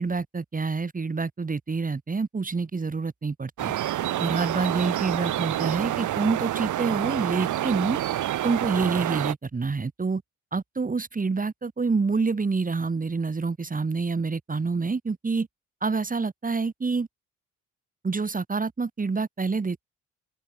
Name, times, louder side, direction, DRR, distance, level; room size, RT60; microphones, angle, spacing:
voice 1, 0.0-3.7 4.2-8.0 8.4-10.2 10.5-15.5 15.8-17.1 18.0-19.8, right 4 dB, 25° right, 3.9 m, -27 dB
sound 1, 3.6-9.3, right 13 dB, 80° right, 3.9 m, -28 dB
open air
cardioid pair, 90°, 30 cm